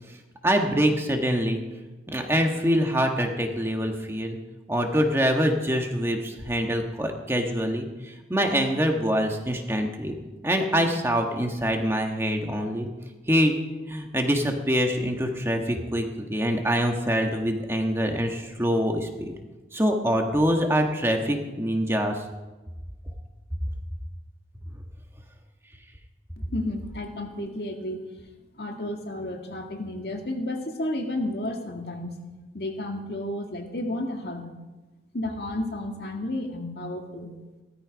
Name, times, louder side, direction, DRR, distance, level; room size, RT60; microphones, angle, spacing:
voice 1, 0.4-1.6 2.1-4.4 4.7-10.1 10.4-12.9 13.3-13.5 13.9-19.3 19.7-22.2, equal, 15° right, 2 dB, 1.6 m, -25 dB
voice 2, 26.4-28.0 28.5-32.1 32.5-34.5 35.1-37.3, left 1 dB, 65° left, 3 dB, 2.1 m, -32 dB
17.0 x 13.5 x 5.2 m, 1.2 s
head